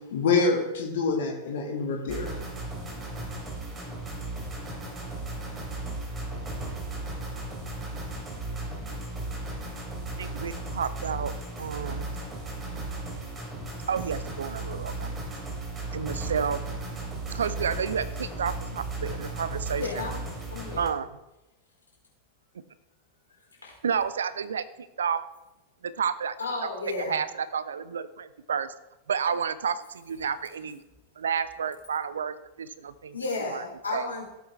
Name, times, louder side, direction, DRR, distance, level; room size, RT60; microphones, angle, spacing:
voice 1, 0.1-2.4, left 4 dB, 60° left, 0 dB, 2.0 m, -26 dB
sound 1, 2.1-20.9, right 2 dB, 20° right, 3.6 m, -35 dB
voice 2, 10.2-11.3 11.6-12.1 13.9-15.1 15.9-16.7 17.3-20.0 20.8-21.1 23.8-25.2 25.8-26.4 27.0-28.7 29.1-30.8 31.2-33.2 33.5-33.6 33.9-34.1, right 7 dB, 65° right, 15 dB, 0.7 m, -30 dB
voice 3, 19.8-20.2 20.5-20.9 23.6-23.7 26.4-27.2 33.1-34.3, left 3 dB, 75° left, -3 dB, 4.8 m, -32 dB
16.5 x 8.4 x 3.5 m, 0.97 s
figure-of-eight pair, 90°, 0 cm